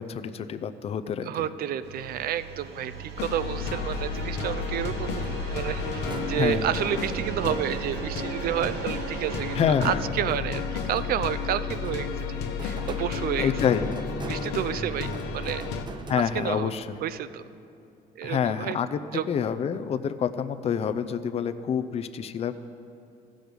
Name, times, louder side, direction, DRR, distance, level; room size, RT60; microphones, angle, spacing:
voice 1, 0.0-1.5 6.3-6.7 9.6-10.0 13.4-13.9 16.1-17.0 18.2-19.0 19.3-22.5, left 7 dB, 35° left, 11 dB, 0.5 m, -27 dB
voice 2, 1.2-13.5 14.3-15.6 16.3-16.7 17.0-17.4 18.2-18.8 19.1-19.2, right 10 dB, 60° right, 13 dB, 0.5 m, -30 dB
sound 1, 1.8-9.6, right 6 dB, 80° right, 1.0 m, -37 dB
sound 2, 3.2-15.8, left 5 dB, 80° left, 1.0 m, -32 dB
sound 3, 5.1-8.1 8.6-11.4 11.8-16.7, right 3 dB, 25° right, 0.7 m, -42 dB
15.0 x 6.3 x 5.2 m, 2.6 s
cardioid pair, 110°, 17 cm